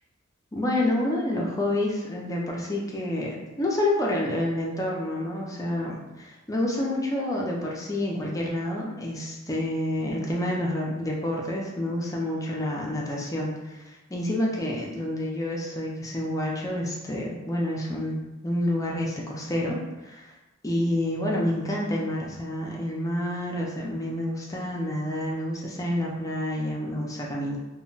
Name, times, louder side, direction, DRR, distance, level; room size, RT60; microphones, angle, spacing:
voice 1, 0.5-18.2 18.4-20.3 20.6-27.6, left 1 dB, 15° left, -3 dB, 0.5 m, -28 dB
2.2 x 2.1 x 3.8 m, 1.1 s
head